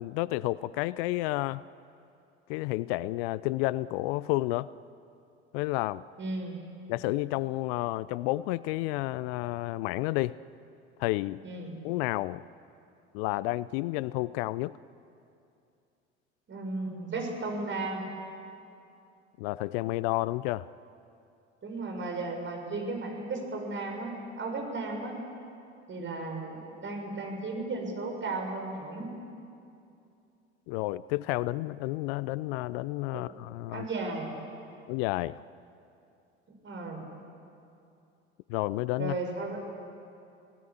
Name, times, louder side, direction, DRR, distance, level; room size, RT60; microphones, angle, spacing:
voice 1, 0.0-1.6 2.5-4.7 5.5-6.0 6.9-10.4 11.0-11.4 11.8-12.4 13.1-14.7 19.4-20.7 30.7-33.9 34.9-35.4 38.5-39.2, left 18 dB, 60° left, 19 dB, 0.6 m, -30 dB
voice 2, 6.2-6.6 11.4-11.8 16.5-18.1 21.6-25.2 25.9-29.1 33.1-33.2 33.7-34.3 36.6-37.0 39.0-39.6, right 3 dB, 35° right, 2 dB, 6.5 m, -35 dB
28.5 x 17.5 x 8.6 m, 2.6 s
figure-of-eight pair, 65°, 34 cm